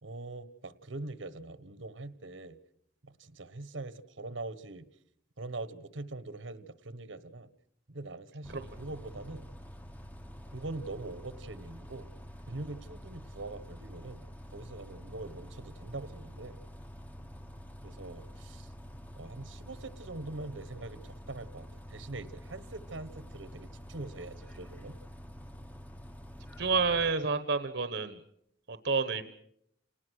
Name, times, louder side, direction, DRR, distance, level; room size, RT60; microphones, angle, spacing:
voice 1, 0.0-2.6 3.0-4.9 5.4-7.5 7.9-9.5 10.5-12.1 12.5-14.2 14.5-16.6 17.8-18.7 19.1-24.9, right 2 dB, 75° right, 14 dB, 1.3 m, -43 dB
Bus, 8.4-27.1, equal, 10° left, 0.9 m, -47 dB
voice 2, 26.6-28.2 28.7-29.2, right 4 dB, 60° right, 11 dB, 1.1 m, -29 dB
28.5 x 19.0 x 6.4 m, 0.71 s
head